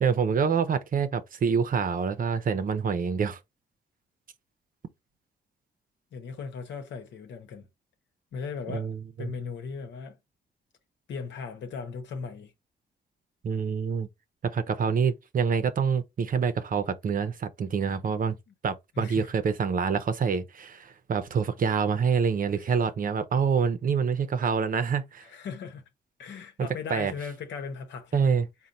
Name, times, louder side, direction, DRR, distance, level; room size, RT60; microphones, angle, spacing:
voice 1, 0.0-3.4 8.7-9.3 13.4-14.1 14.4-18.4 18.6-25.3 26.6-27.1 28.1-28.5, right 6 dB, 50° right, 0.6 m, -26 dB
voice 2, 6.1-7.7 8.3-8.9 9.2-10.2 11.1-12.5 18.5-18.6 19.0-19.3 22.5-22.8 25.2-25.9 26.2-28.4, left 5 dB, 80° left, 1.0 m, -38 dB
3.9 x 2.2 x 4.2 m
cardioid pair, 80°, 18 cm